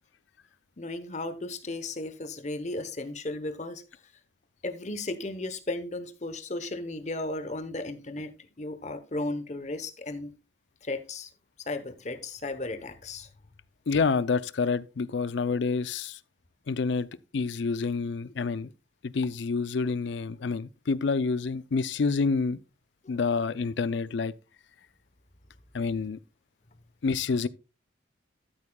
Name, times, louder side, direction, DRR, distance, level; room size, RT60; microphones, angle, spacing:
voice 1, 0.8-3.8 4.6-10.3 10.8-11.3 11.6-13.3 23.0-23.2, left 2 dB, 35° left, 0.9 m, -35 dB
voice 2, 13.9-16.2 16.7-17.1 17.3-18.7 19.0-22.6 23.1-24.3 25.7-26.2 27.0-27.5, left 4 dB, 70° left, 0.5 m, -28 dB
13.0 x 8.4 x 2.3 m
head